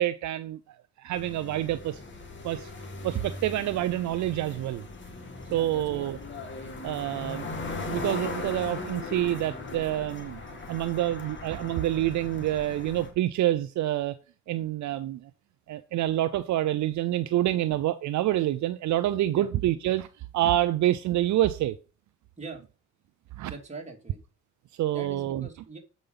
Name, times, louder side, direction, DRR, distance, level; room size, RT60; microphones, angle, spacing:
voice 1, 0.0-2.0 2.4-2.7 3.0-4.8 5.5-6.2 6.8-10.4 10.7-14.2 14.5-15.3 15.7-20.1 20.3-21.8 23.4-23.5 24.8-25.5, right 13 dB, 70° right, 12 dB, 0.6 m, -27 dB
sound 1, 1.1-13.1, left 3 dB, 40° left, 2.2 m, -39 dB
voice 2, 5.5-6.0 19.3-19.5 22.4-22.6 23.5-24.2 24.9-25.8, right 3 dB, 25° right, 1 dB, 2.7 m, -42 dB
7.8 x 5.2 x 5.6 m, 0.33 s
cardioid pair, 90°, 30 cm